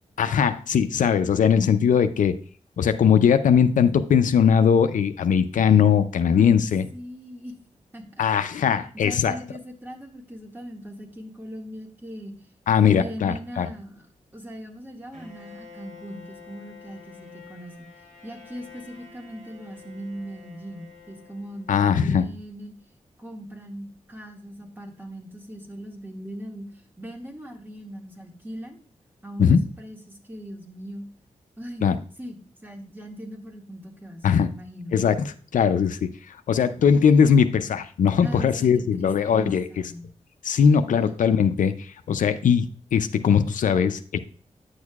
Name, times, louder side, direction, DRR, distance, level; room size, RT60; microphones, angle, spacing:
voice 1, 0.2-2.3 2.8-6.9 8.2-9.3 12.7-13.7 21.7-22.2 29.4-29.6 31.8-32.0 34.2-34.5 34.9-35.3 35.5-39.7 40.4-44.2, left 7 dB, 85° left, 10 dB, 0.5 m, -20 dB
voice 2, 6.3-6.7 6.9-7.5 7.9-8.4 8.9-12.3 12.9-14.1 14.3-17.9 18.2-22.7 23.2-26.7 27.0-28.8 29.2-31.0 31.6-31.9 32.2-35.0 38.2-40.1 40.9-41.1, equal, 15° right, 1 dB, 1.9 m, -39 dB
Bowed string instrument, 15.1-22.1, left 5 dB, 80° right, 3.3 m, -48 dB
9.4 x 6.3 x 2.4 m, 0.43 s
cardioid pair, 65°, 13 cm